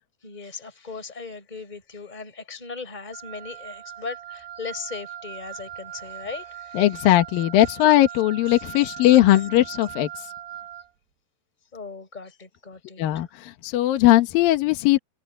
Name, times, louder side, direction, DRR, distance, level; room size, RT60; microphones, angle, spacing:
voice 1, 0.2-6.8 11.7-13.0, left 4 dB, 10° left, 4.8 m, -38 dB
Wind instrument woodwind instrument, 3.1-10.9, right 11 dB, 85° right, 5.1 m, -40 dB
voice 2, 6.7-10.1 13.0-15.0, left 14 dB, 65° left, 2.7 m, -19 dB
omnidirectional pair, 4.9 m